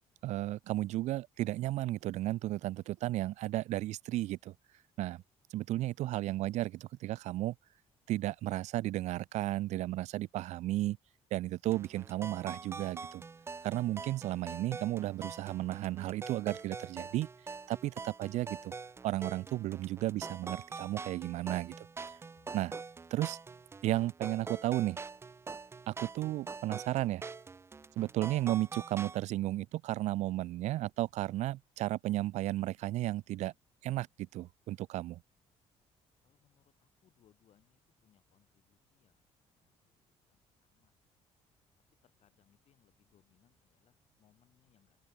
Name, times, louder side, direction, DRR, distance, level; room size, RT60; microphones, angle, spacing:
voice 1, 0.2-4.5 5.0-5.2 5.5-7.5 8.1-11.0 11.3-13.2 13.6-17.3 17.7-18.7 19.0-21.9 22.5-22.7 23.1-23.4 23.8-25.0 25.9-27.2 28.0-33.5 33.8-34.1 34.3-35.2, right 15 dB, 75° right, 0.5 m, -34 dB
sound 1, 11.7-29.2, right 4 dB, 20° right, 0.5 m, -45 dB
voice 2, 36.2-40.0 40.2-40.9 42.0-45.0, left 10 dB, 60° left, 6.3 m, -71 dB
open air
cardioid pair, 100°, 12 cm